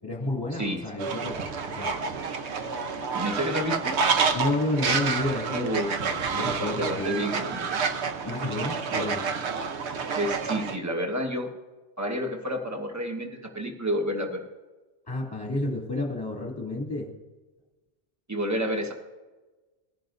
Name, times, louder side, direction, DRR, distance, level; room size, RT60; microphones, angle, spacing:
voice 1, 0.0-2.0 4.3-7.2 8.2-9.3 10.4-10.5 15.1-17.1, left 2 dB, 20° left, -3 dB, 2.2 m, -31 dB
Fowl, 1.0-10.8, right 5 dB, 85° right, 1.1 m, -29 dB
voice 2, 3.1-3.9 5.5-5.9 6.4-7.8 8.9-9.0 10.1-11.5 12.0-14.4 18.3-18.9, equal, 15° right, 2 dB, 1.2 m, -30 dB
20.5 x 11.0 x 2.6 m, 1.2 s
omnidirectional pair, 1.1 m